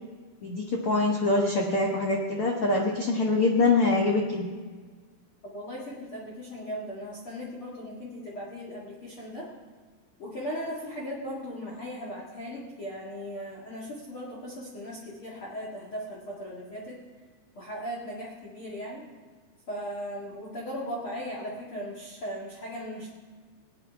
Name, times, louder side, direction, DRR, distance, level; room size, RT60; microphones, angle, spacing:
voice 1, 0.4-4.5, left 3 dB, 85° left, -1 dB, 1.2 m, -24 dB
voice 2, 5.4-9.5 10.2-17.0 17.6-19.0 19.7-23.1, equal, 40° left, -5 dB, 2.2 m, -37 dB
18.5 x 10.5 x 3.5 m, 1.5 s
omnidirectional pair, 4.4 m